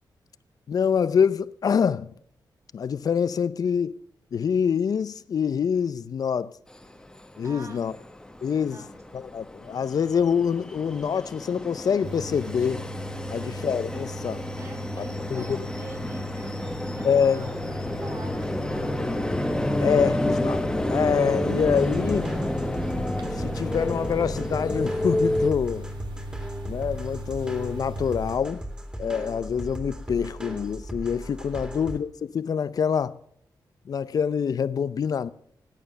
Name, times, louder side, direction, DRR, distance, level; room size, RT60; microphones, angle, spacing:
voice 1, 0.7-2.1 2.7-4.0 4.3-6.6 7.4-7.9 8.4-8.8 9.1-12.9 13.3-14.4 15.0-15.1 15.3-15.7 17.0-17.5 19.8-20.6 20.9-22.3 23.3-25.9 26.7-28.6 29.0-33.2 33.9-35.3, left 7 dB, 55° left, 0.5 m, -25 dB
sound 1, 6.8-6.9 7.2-25.5, left 1 dB, 10° left, 1.1 m, -29 dB
voice 2, 7.4-7.9 8.5-8.9 14.6-18.9 31.5-31.8, right 3 dB, 40° right, 3.1 m, -46 dB
sound 2, 12.0-28.4, equal, 80° right, 1.7 m, -38 dB
sound 3, 21.6-32.0, right 1 dB, 10° right, 2.4 m, -37 dB
17.0 x 9.4 x 6.5 m
wide cardioid pair, 120°, 8 cm